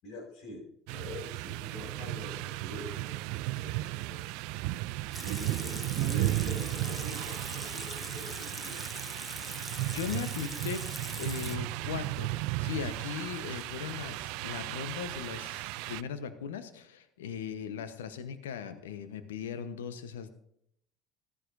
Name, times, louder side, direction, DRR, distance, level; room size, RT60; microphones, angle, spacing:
voice 1, 0.0-4.4 4.8-8.9, left 1 dB, 60° left, 0 dB, 5.3 m, -45 dB
sound 1, 0.9-16.0, right 18 dB, 70° right, 0.3 m, -35 dB
Water tap faucet / Sink (filling or washing) / Liquid, 5.1-11.6, equal, 5° left, 1.3 m, -42 dB
voice 2, 9.5-10.8 11.1-20.3, left 7 dB, 85° left, 10 dB, 1.0 m, -38 dB
15.0 x 12.5 x 2.6 m, 0.72 s
hypercardioid pair, 70°, 0 cm